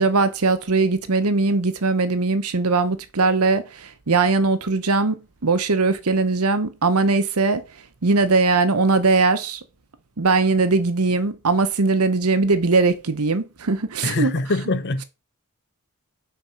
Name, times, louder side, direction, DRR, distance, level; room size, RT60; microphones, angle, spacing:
voice 1, 0.0-7.6 8.0-9.6 10.2-14.3, right 3 dB, 80° right, 0.9 m, -20 dB
voice 2, 14.0-15.0, left 2 dB, 50° left, 0.7 m, -23 dB
6.0 x 4.2 x 5.7 m
head